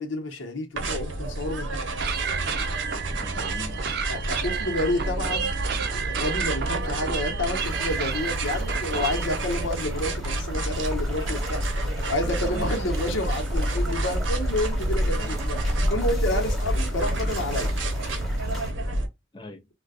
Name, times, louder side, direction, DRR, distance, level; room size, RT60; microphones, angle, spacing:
voice 1, 0.0-2.0 4.1-5.5 5.9-15.6 15.9-17.7, left 1 dB, 80° left, 1.0 m, -30 dB
sound 1, 0.8-19.1, right 1 dB, 85° right, 0.8 m, -29 dB
sound 2, 2.0-9.4, right 7 dB, 55° right, 0.5 m, -32 dB
voice 2, 3.1-3.8 12.2-12.7 14.8-15.3 16.3-16.6 19.3-19.7, left 2 dB, 25° left, 0.5 m, -41 dB
sound 3, 7.5-18.7, equal, ahead, 1.1 m, -34 dB
3.7 x 2.2 x 2.4 m
head